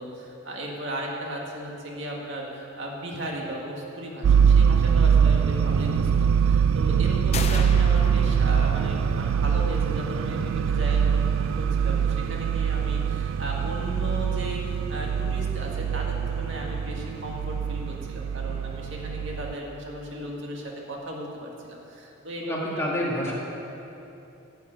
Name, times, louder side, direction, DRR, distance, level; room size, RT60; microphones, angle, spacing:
voice 1, 0.0-22.9 23.3-23.4, right 1 dB, 65° right, -1 dB, 1.9 m, -36 dB
sound 1, 4.2-19.5, right 7 dB, 85° right, 0.3 m, -23 dB
sound 2, 7.3-9.2, left 4 dB, 30° left, 0.6 m, -34 dB
voice 2, 22.4-23.3, equal, 15° left, -5 dB, 2.0 m, -28 dB
12.0 x 7.0 x 8.8 m, 2.9 s
head